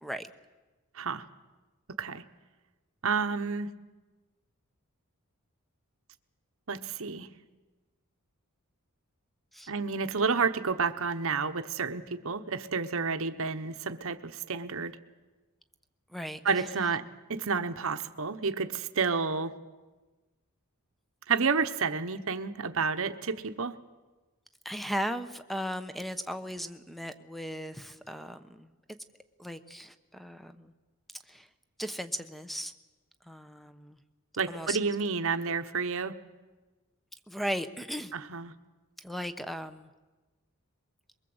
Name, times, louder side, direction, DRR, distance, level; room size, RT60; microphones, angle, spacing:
voice 1, 0.9-1.3 2.0-2.2 3.0-3.7 6.7-7.3 9.7-15.0 16.4-17.0 17.3-19.5 21.3-23.7 34.4-36.2 38.1-38.5, right 5 dB, 65° right, 9 dB, 1.1 m, -30 dB
voice 2, 16.1-16.7 24.6-29.0 29.4-30.7 31.3-31.5 31.8-32.7 33.2-34.0 34.5-34.8 37.3-38.1 39.0-39.9, equal, ahead, 10 dB, 1.0 m, -37 dB
23.5 x 22.5 x 8.0 m, 1.2 s
head